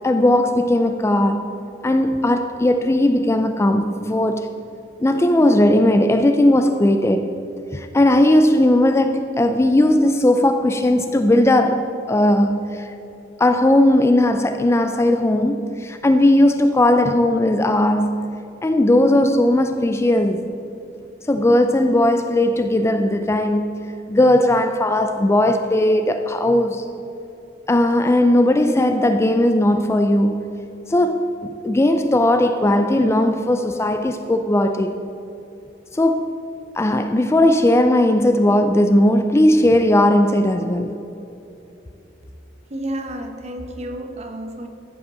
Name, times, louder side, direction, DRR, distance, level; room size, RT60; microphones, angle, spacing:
voice 1, 0.0-1.5 1.8-4.5 5.0-7.3 7.7-12.9 13.4-18.3 18.6-20.5 21.3-26.9 27.7-30.4 30.9-35.0 35.9-36.4 36.8-40.9, left 1 dB, 15° left, 0.3 m, -17 dB
voice 2, 42.7-44.7, right 1 dB, 35° right, 0.9 m, -31 dB
14.0 x 5.4 x 6.9 m
head